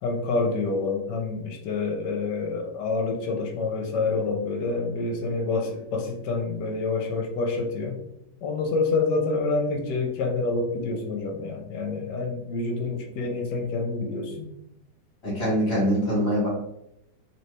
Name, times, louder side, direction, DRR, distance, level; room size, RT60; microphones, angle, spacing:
voice 1, 0.0-8.0 8.4-14.5, left 3 dB, 75° left, 2 dB, 1.3 m, -27 dB
voice 2, 15.2-16.5, equal, 55° left, -8 dB, 1.7 m, -23 dB
3.2 x 2.8 x 3.1 m, 0.80 s
omnidirectional pair, 1.9 m